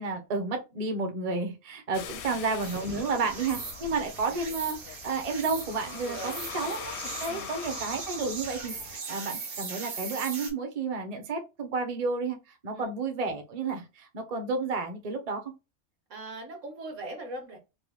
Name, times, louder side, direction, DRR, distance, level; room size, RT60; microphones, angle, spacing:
voice 1, 0.0-6.9 7.2-15.4, right 4 dB, 40° right, 4 dB, 0.6 m, -31 dB
sound 1, 1.9-9.0, left 8 dB, 65° left, 0.7 m, -43 dB
sound 2, 2.6-10.5, right 4 dB, 90° right, 1.6 m, -39 dB
voice 2, 6.0-6.4 7.3-7.5 12.7-12.9 16.1-17.6, right 2 dB, 60° right, 3 dB, 1.5 m, -41 dB
4.7 x 2.3 x 2.3 m, 0.26 s
omnidirectional pair, 1.5 m